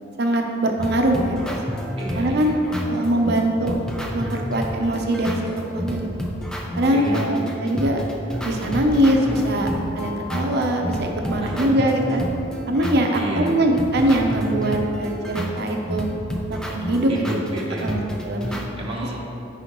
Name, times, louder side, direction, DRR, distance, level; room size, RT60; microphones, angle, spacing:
voice 1, 0.2-1.5 2.1-2.5 2.9-3.7 4.1-5.4 5.7-6.2 6.8-8.0 8.4-9.7 9.9-12.3 12.7-16.1 16.5-17.4 17.8-18.6, right 1 dB, 60° right, 2 dB, 0.7 m, -22 dB
sound 1, 0.8-18.6, equal, 5° left, 0.5 m, -30 dB
voice 2, 2.0-2.6 3.0-3.1 6.9-7.5 11.4-11.8 13.1-13.5 17.1-17.9 18.8-19.2, right 1 dB, 30° right, -4 dB, 0.9 m, -31 dB
9.6 x 4.9 x 3.1 m, 2.7 s
head